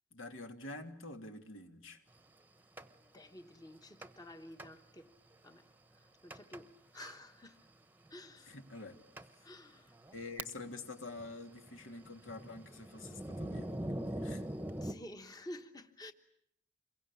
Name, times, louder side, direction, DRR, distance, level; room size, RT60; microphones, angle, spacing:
voice 1, 0.1-2.0 8.4-9.0 9.3-9.4 10.1-14.5, left 2 dB, 85° left, 2.9 m, -47 dB
Thunder, 2.8-2.9 4.0-4.3 4.6-4.7 5.3-5.4 6.3-6.6 7.0-7.2 8.1-8.2 8.8-8.9 9.2-9.3 9.9-10.8 11.1-14.9, right 1 dB, 10° right, 1.0 m, -42 dB
voice 2, 3.1-5.1 5.4-5.7 5.9-7.6 8.1-8.5 9.4-10.0 14.7-16.1, left 1 dB, 20° left, 1.1 m, -51 dB
27.0 x 22.5 x 8.5 m
head